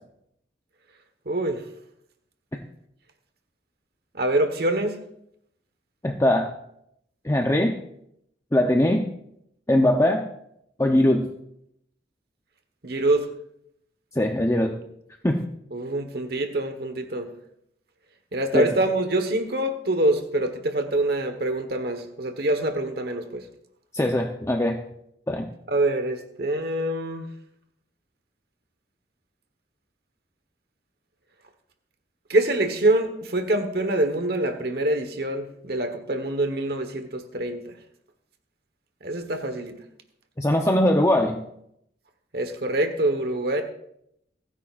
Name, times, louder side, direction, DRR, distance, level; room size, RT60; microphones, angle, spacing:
voice 1, 1.2-1.7 4.1-5.0 12.8-13.3 15.7-17.3 18.3-23.5 25.7-27.3 32.3-37.7 39.0-39.8 42.3-43.6, right 1 dB, 60° right, 7 dB, 1.3 m, -25 dB
voice 2, 6.0-6.5 7.2-7.7 8.5-9.1 9.7-10.3 10.8-11.3 14.2-14.7 15.2-15.4 18.5-18.7 23.9-24.8 25.3-25.4 40.4-41.4, left 1 dB, 15° left, 2 dB, 0.8 m, -21 dB
28.5 x 10.0 x 2.5 m, 0.75 s
head